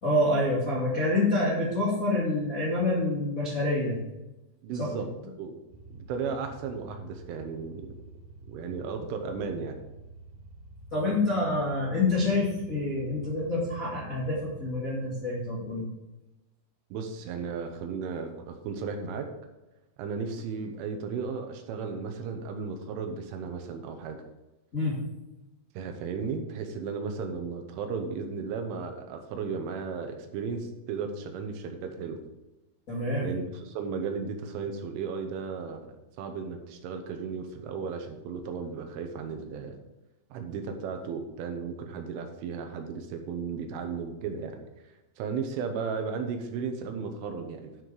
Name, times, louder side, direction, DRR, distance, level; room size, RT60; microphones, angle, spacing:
voice 1, 0.0-4.0 4.7-4.9 10.9-15.9 24.7-25.0 32.9-33.4, left 2 dB, 45° left, -7 dB, 1.0 m, -27 dB
voice 2, 4.6-5.1 5.4-5.5 5.9-7.9 8.4-9.8 16.9-19.3 20.0-24.2 25.7-32.2 33.2-35.9 36.2-39.8 40.3-44.6 45.2-47.7, right 5 dB, 80° right, 5 dB, 3.4 m, -35 dB
sound 1, 5.7-14.7, right 1 dB, 60° right, 3.5 m, -48 dB
12.0 x 5.9 x 4.8 m, 1.0 s
omnidirectional pair, 5.8 m